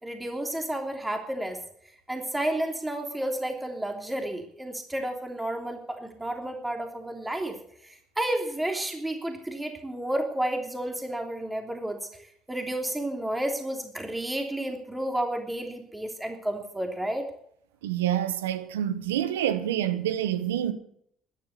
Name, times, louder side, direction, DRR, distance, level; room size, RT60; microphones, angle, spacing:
voice 1, 0.0-1.6 2.1-7.6 7.8-12.0 12.5-17.3, right 1 dB, 10° right, 3.2 m, -31 dB
voice 2, 17.8-20.7, right 11 dB, 90° right, 1.0 m, -27 dB
13.5 x 9.6 x 8.3 m
hypercardioid pair, 60°, 0 cm